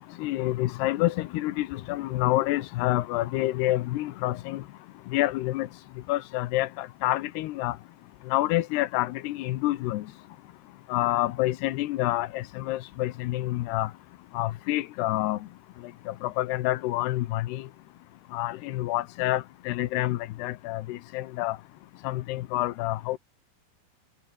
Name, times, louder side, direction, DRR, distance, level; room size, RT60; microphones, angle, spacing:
voice 1, 0.2-4.6 5.1-5.7 6.1-7.8 8.3-10.0 10.9-13.9 14.3-15.4 16.1-17.6 18.3-21.6 22.0-23.2, left 17 dB, 75° left, 2.6 m, -28 dB
omnidirectional pair, 5.7 m